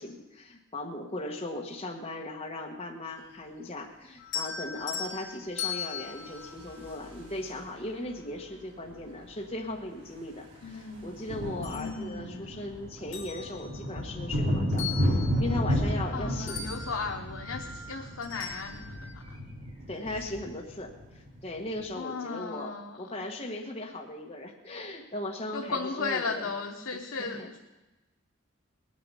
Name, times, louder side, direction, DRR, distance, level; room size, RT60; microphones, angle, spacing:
voice 1, 0.0-14.9 15.4-16.7 19.9-26.5 27.2-27.6, left 1 dB, 30° left, -1 dB, 1.3 m, -38 dB
sound 1, 4.2-7.5 9.2-9.3 9.8-11.0 11.4-12.6 13.0-16.2 16.5-19.1, left 7 dB, 60° left, 2.7 m, -40 dB
sound 2, 6.1-7.7 9.0-9.1 9.3-9.5 9.8-21.9, equal, 85° right, 4.8 m, -33 dB
voice 2, 10.6-11.1 11.7-12.6 16.1-19.4 20.0-20.1 21.9-23.1 25.5-27.6, left 4 dB, 85° left, 3 dB, 0.9 m, -36 dB
19.5 x 9.5 x 5.6 m, 1.1 s
head